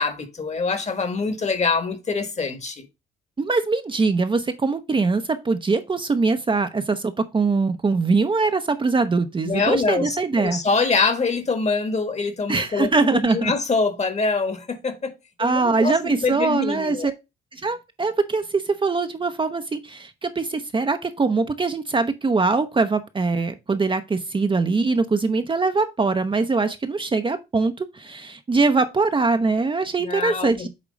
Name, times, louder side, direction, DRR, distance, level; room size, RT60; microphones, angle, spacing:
voice 1, 0.0-2.8 9.4-15.1 15.4-17.1 30.0-30.7, left 4 dB, 35° left, 1.5 m, -24 dB
voice 2, 3.4-10.6 12.5-13.5 15.4-17.1 17.5-30.7, right 4 dB, 25° right, 0.7 m, -22 dB
8.3 x 3.0 x 5.0 m
cardioid pair, 90°, 20 cm